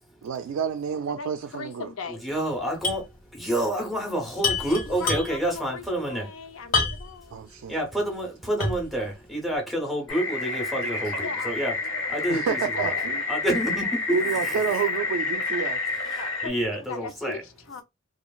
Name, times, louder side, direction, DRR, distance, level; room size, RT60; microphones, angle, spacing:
voice 1, 0.2-1.9 7.3-7.8 10.7-11.1 12.3-13.2 14.1-15.8, right 6 dB, 90° right, 0.3 m, -29 dB
voice 2, 1.1-2.2 4.8-7.4 11.2-12.3 12.8-13.1 13.8-13.9 16.2-17.8, left 5 dB, 85° left, 0.6 m, -39 dB
voice 3, 2.1-3.1 3.3-6.3 7.7-11.7 12.1-12.9 13.3-14.0 14.4-14.6 16.4-17.4, right 1 dB, ahead, 0.7 m, -28 dB
sound 1, 2.8-3.1 3.4-3.5 4.4-5.5 6.7-7.2 7.7-7.8 8.6-9.0, left 3 dB, 40° left, 0.9 m, -27 dB
sound 2, 10.1-16.5, left 4 dB, 65° left, 1.2 m, -29 dB
3.1 x 2.3 x 2.3 m
head